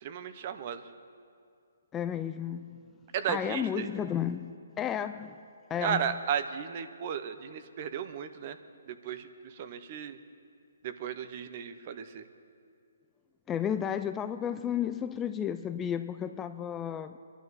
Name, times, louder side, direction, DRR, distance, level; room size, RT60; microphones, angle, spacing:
voice 1, 0.0-0.8 3.1-3.9 5.8-8.6 8.9-10.2 10.8-12.2, right 8 dB, 40° right, 10 dB, 0.8 m, -34 dB
voice 2, 1.9-2.8 3.3-5.4 5.7-6.2 13.5-17.2, left 9 dB, 15° left, 10 dB, 0.3 m, -33 dB
24.0 x 11.0 x 4.1 m, 2.3 s
hypercardioid pair, 155°, 0 cm